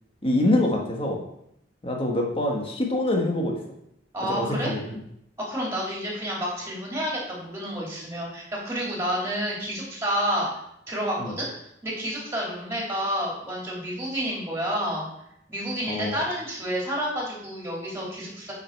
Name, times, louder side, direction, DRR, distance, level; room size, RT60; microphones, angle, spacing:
voice 1, 0.2-1.2 1.8-3.6 4.3-5.0 11.2-11.3 15.9-16.2, left 1 dB, 30° left, 0 dB, 1.5 m, -25 dB
voice 2, 4.1-4.7 5.5-10.5 10.9-11.5 11.8-15.1 15.5-18.5, equal, 15° right, -4 dB, 3.0 m, -29 dB
8.6 x 5.3 x 4.7 m, 0.76 s
head